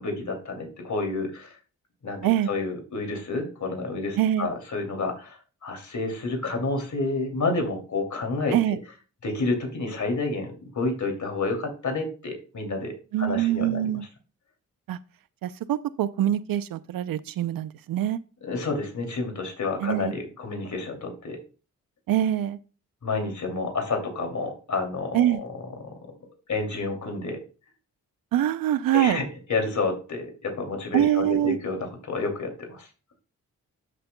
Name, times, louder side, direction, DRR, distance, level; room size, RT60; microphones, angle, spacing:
voice 1, 0.0-1.6 2.0-8.5 9.2-12.9 13.2-13.9 18.4-21.4 23.0-25.5 25.8-25.9 26.5-27.4 28.9-29.2 29.5-32.9, left 3 dB, 60° left, 2.8 m, -29 dB
voice 2, 4.2-4.5 8.5-8.8 13.1-14.0 14.9-15.0 15.4-18.2 19.8-20.1 22.1-22.6 25.1-25.4 28.3-29.2 30.9-31.6, right 12 dB, 80° right, 0.6 m, -24 dB
12.0 x 6.7 x 2.2 m
supercardioid pair, 50°, 34 cm